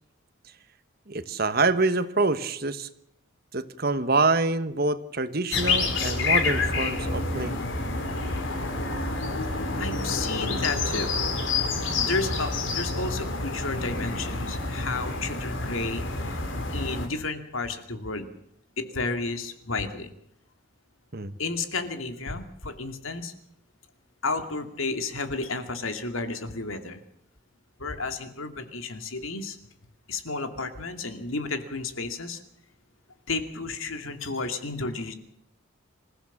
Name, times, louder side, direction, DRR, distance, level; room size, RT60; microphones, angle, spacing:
voice 1, 1.1-2.9 3.5-7.6 21.1-21.3, right 3 dB, 50° right, 12 dB, 1.3 m, -26 dB
blackbird urban garden, 5.5-17.1, left 3 dB, 65° left, 3.8 m, -28 dB
voice 2, 8.2-9.3 9.8-11.2 12.0-16.4 16.7-18.3 18.8-20.1 21.4-23.3 24.2-27.0 27.8-29.6 30.1-32.4 33.3-35.1, left 3 dB, 85° left, 7 dB, 2.6 m, -32 dB
26.5 x 15.5 x 7.4 m, 0.74 s
head